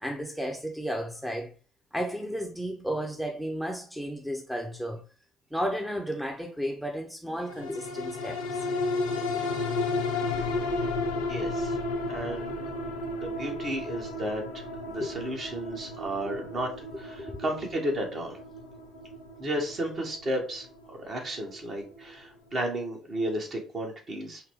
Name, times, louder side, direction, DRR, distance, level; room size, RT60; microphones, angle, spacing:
voice 1, 0.0-1.5 1.9-5.0 5.5-8.6 15.0-15.1 17.3-17.4, equal, ahead, 0.7 m, -33 dB
sound 1, 7.5-22.1 22.6-22.7, left 3 dB, 80° left, 0.8 m, -33 dB
voice 2, 11.3-11.8 12.1-12.6 13.1-18.4 19.4-20.7 21.0-24.4, right 1 dB, 40° right, 1.4 m, -33 dB
5.5 x 2.2 x 3.5 m
figure-of-eight pair, 50°, 0 cm